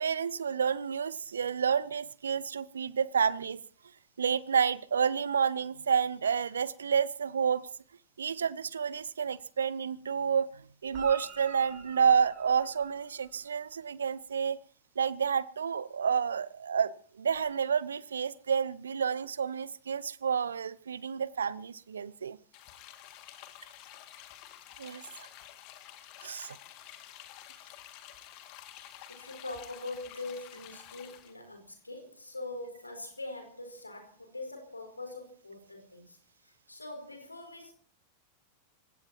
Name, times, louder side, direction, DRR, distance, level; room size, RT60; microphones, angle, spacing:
voice 1, 0.0-3.6 4.2-7.7 8.2-10.5 10.8-14.6 15.0-22.4 24.8-25.0 26.2-26.6, right 7 dB, 70° right, 0.9 m, -29 dB
Guitar, 10.9-13.5 17.3-17.4, right 4 dB, 30° right, 5.4 m, -48 dB
sound 1, 22.5-31.3, left 12 dB, 45° left, 2.3 m, -50 dB
voice 2, 29.1-37.7, left 2 dB, 80° left, 4.7 m, -43 dB
27.0 x 16.5 x 3.0 m
figure-of-eight pair, 90°, 0 cm